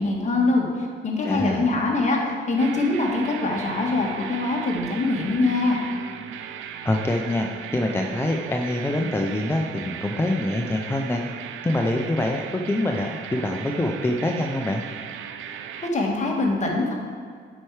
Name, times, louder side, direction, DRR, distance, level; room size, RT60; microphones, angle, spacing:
voice 1, 0.0-5.8 15.9-16.9, left 2 dB, 35° left, -1 dB, 1.5 m, -23 dB
voice 2, 1.2-1.7 6.8-11.2 11.6-14.8, left 1 dB, 10° left, 2 dB, 0.5 m, -25 dB
sound 1, 2.6-15.9, right 8 dB, 85° right, 0.5 m, -37 dB
7.5 x 4.6 x 4.8 m, 2.1 s
cardioid pair, 90°, 20 cm